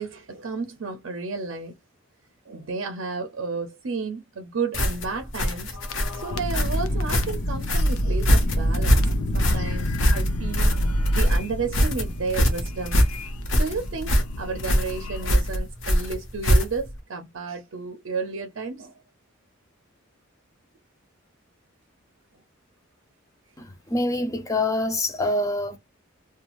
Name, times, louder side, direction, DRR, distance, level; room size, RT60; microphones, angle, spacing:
voice 1, 0.0-1.7 2.5-5.7 6.1-9.0 9.3-13.1 13.5-18.9, right 4 dB, 65° right, 0.5 m, -32 dB
sound 1, 4.7-17.0, equal, 65° left, 0.9 m, -23 dB
sound 2, 5.7-15.6, equal, 90° left, 0.5 m, -27 dB
voice 2, 23.6-25.8, left 2 dB, 15° left, 0.4 m, -25 dB
2.5 x 2.2 x 3.0 m
head